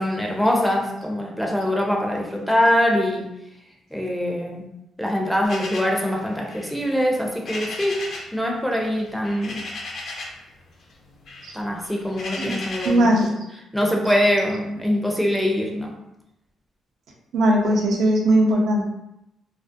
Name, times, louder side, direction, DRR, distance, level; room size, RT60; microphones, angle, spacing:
voice 1, 0.0-3.3 3.9-4.7 5.0-8.0 8.3-9.6 11.5-13.3 13.7-15.9, equal, ahead, 0 dB, 0.4 m, -23 dB
sound 1, 5.4-8.4 8.6-10.5 10.8-13.1, left 2 dB, 65° left, 0.5 m, -36 dB
voice 2, 12.8-13.3 17.3-18.8, right 1 dB, 75° right, -1 dB, 0.5 m, -19 dB
2.4 x 2.0 x 2.5 m, 0.86 s
cardioid pair, 90°, 0 cm